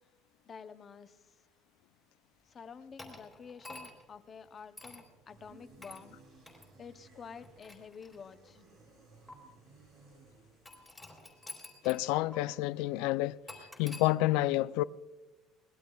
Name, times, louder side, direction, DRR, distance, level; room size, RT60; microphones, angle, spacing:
voice 1, 0.5-1.2 2.5-6.2 6.8-8.6, left 6 dB, 25° left, 0.7 m, -49 dB
sound 1, 3.0-4.1 4.8-5.1 5.8-6.0 6.5-6.7 7.4-8.5 9.3-9.4 10.7-12.1 12.3-12.4 13.5-14.1, left 2 dB, ahead, 3.0 m, -49 dB
sound 2, 5.3-12.1, right 3 dB, 45° right, 3.1 m, -60 dB
voice 2, 11.8-13.4 13.8-14.8, left 17 dB, 90° left, 0.4 m, -29 dB
23.5 x 19.5 x 2.3 m
cardioid pair, 175°, 0 cm